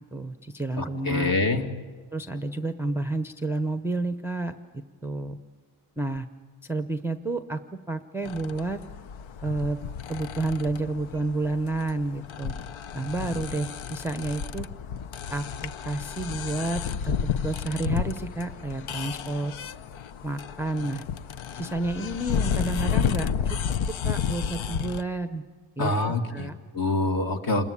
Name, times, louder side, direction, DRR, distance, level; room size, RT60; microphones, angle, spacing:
voice 1, 0.1-1.3 2.1-5.4 6.0-6.3 6.6-7.6 7.9-8.8 9.4-9.8 10.1-12.5 12.9-14.7 15.3-19.5 20.2-21.0 21.5-23.6 24.0-25.4 25.8-26.6, right 2 dB, 5° right, 8 dB, 0.7 m, -30 dB
voice 2, 0.8-1.6 25.8-26.5 26.7-27.7, left 2 dB, 45° left, 5 dB, 2.3 m, -25 dB
sound 1, 8.2-25.0, left 8 dB, 70° left, 0.9 m, -32 dB
28.0 x 20.5 x 8.5 m, 1.5 s
wide cardioid pair, 150°, 50 cm